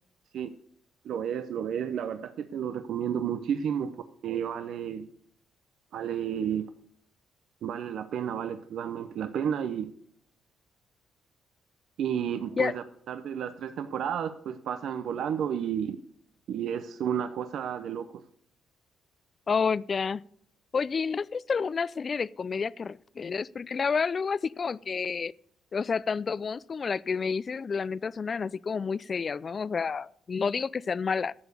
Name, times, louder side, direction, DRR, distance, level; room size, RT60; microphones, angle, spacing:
voice 1, 1.0-3.9 4.2-5.1 5.9-6.6 7.6-9.9 12.0-16.0 16.5-18.1, right 8 dB, 70° right, 0.6 m, -31 dB
voice 2, 19.5-20.2 20.7-25.3 25.7-31.3, left 5 dB, 40° left, 0.3 m, -29 dB
11.0 x 7.1 x 6.7 m
cardioid pair, 90°, 0 cm